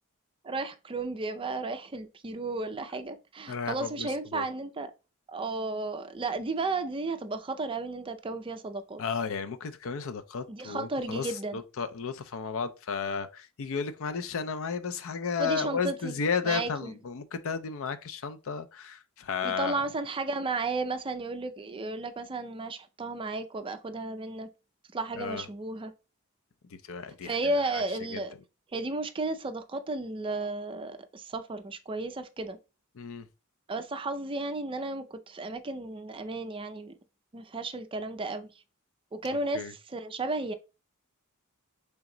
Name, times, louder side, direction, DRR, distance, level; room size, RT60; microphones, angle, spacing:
voice 1, 0.4-4.9 5.3-9.0 10.5-11.6 15.4-16.2 16.4-16.9 19.4-24.5 24.9-25.9 27.2-28.3 28.7-32.6 33.7-36.9 37.3-38.5 39.1-40.5, right 3 dB, 25° right, 0.4 m, -33 dB
voice 2, 3.5-4.5 9.0-19.8 25.1-25.4 26.7-27.8 28.1-28.2 32.9-33.3 39.5-39.7, left 5 dB, 65° left, 0.5 m, -33 dB
3.4 x 3.0 x 3.7 m
head